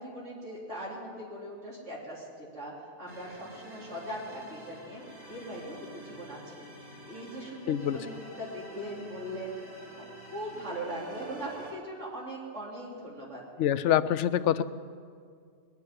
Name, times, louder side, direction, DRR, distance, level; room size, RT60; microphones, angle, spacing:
voice 1, 0.0-5.0 5.3-6.7 7.1-9.6 10.2-13.4, right 1 dB, 90° right, -6 dB, 3.3 m, -40 dB
sound 1, 3.1-11.7, right 1 dB, 20° right, 2.4 m, -48 dB
voice 2, 7.7-8.0 13.6-14.6, left 11 dB, 80° left, 14 dB, 0.9 m, -25 dB
21.0 x 7.2 x 9.6 m, 2.1 s
omnidirectional pair, 1.2 m